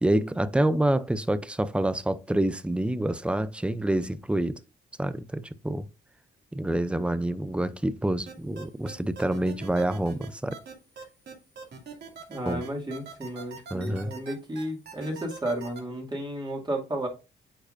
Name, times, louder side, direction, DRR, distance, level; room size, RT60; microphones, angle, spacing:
voice 1, 0.0-4.6 5.0-5.9 6.5-10.6 12.5-12.6 13.7-14.1, right 1 dB, 5° right, 0.5 m, -27 dB
sound 1, 8.3-15.8, right 5 dB, 60° right, 2.4 m, -42 dB
voice 2, 12.3-17.1, right 1 dB, 20° right, 2.4 m, -33 dB
8.8 x 4.8 x 2.6 m
cardioid pair, 90°, 20 cm